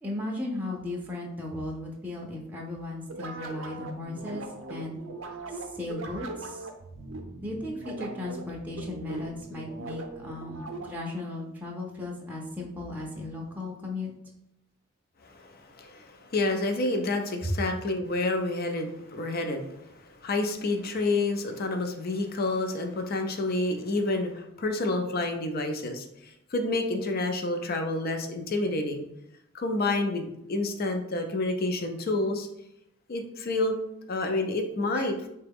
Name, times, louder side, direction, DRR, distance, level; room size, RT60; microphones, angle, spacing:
voice 1, 0.0-5.0 5.5-6.7 7.4-14.1 17.4-17.6 34.9-35.1, left 2 dB, 10° right, -2 dB, 0.5 m, -36 dB
sound 1, 3.1-11.2, right 2 dB, 70° right, 0.5 m, -40 dB
voice 2, 15.2-19.9 20.2-29.0 29.5-32.5 33.1-33.7 34.1-35.2, left 2 dB, 50° left, 5 dB, 0.5 m, -29 dB
3.8 x 2.2 x 3.4 m, 0.81 s
head